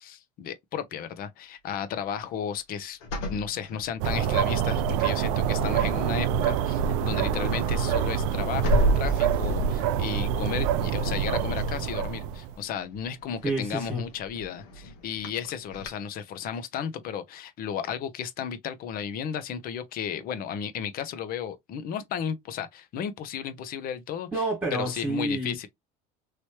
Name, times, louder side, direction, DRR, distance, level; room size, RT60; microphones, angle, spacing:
voice 1, 0.0-24.3 24.7-25.7, left 8 dB, 50° left, 0.7 m, -34 dB
sound 1, 3.0-4.5 5.0-5.3 5.6-15.9, right 1 dB, 90° left, 1.2 m, -34 dB
sound 2, 4.0-12.5, right 8 dB, 90° right, 0.5 m, -26 dB
voice 2, 13.4-14.0 24.3-25.7, right 1 dB, 10° right, 1.6 m, -29 dB
3.2 x 3.0 x 2.8 m
cardioid pair, 130°, 19 cm